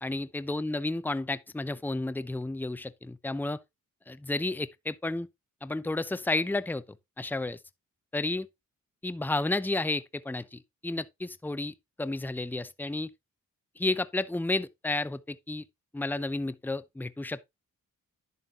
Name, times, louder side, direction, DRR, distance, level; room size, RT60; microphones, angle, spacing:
voice 1, 0.0-3.6 4.1-5.3 5.6-7.6 8.1-8.5 9.0-13.1 13.8-15.6 15.9-17.4, left 2 dB, 5° left, 0.7 m, -32 dB
11.0 x 6.8 x 2.9 m
cardioid pair, 65°, 33 cm